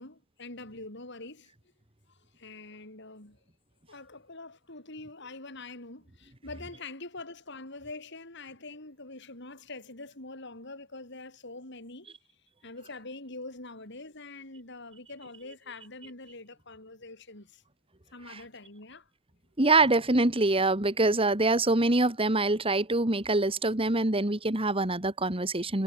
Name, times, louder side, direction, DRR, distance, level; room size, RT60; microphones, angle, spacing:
voice 1, 0.0-1.5 2.4-3.4 3.9-12.1 12.6-17.6 18.1-19.0, left 2 dB, 60° left, 6.6 m, -44 dB
voice 2, 19.6-25.8, right 2 dB, 30° right, 2.2 m, -25 dB
head